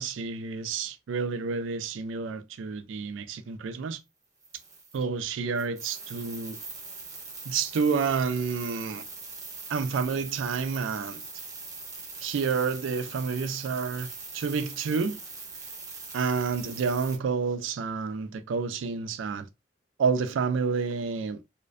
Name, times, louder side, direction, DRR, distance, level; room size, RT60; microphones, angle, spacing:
voice 1, 0.0-4.0 4.9-6.6 7.5-9.0 9.7-11.2 12.2-14.1 14.3-15.2 16.1-19.5 20.0-21.4, right 5 dB, 90° right, 0.4 m, -29 dB
sound 1, 4.4-5.0 5.5-17.2, right 4 dB, 20° right, 0.5 m, -42 dB
2.4 x 2.1 x 2.3 m
head